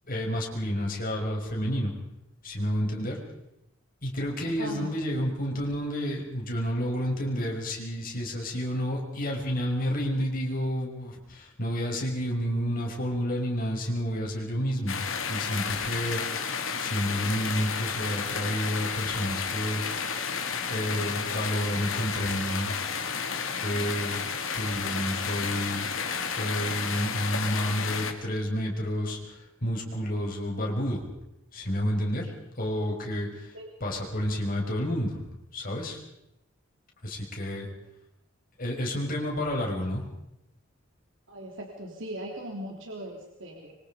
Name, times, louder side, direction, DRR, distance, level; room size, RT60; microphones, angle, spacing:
voice 1, 0.1-1.9 2.4-3.2 4.0-15.0 15.3-16.5 16.8-19.8 20.7-22.7 23.6-25.9 26.4-31.0 31.5-32.3 32.6-35.2 35.5-36.0 37.0-37.7 38.6-40.0, equal, 45° left, 0 dB, 5.9 m, -30 dB
voice 2, 4.4-4.9 33.5-33.7 41.3-43.7, right 1 dB, 65° right, 1 dB, 3.5 m, -39 dB
sound 1, 14.9-28.1, left 6 dB, 70° left, 2.7 m, -32 dB
26.0 x 24.5 x 5.2 m, 0.85 s
head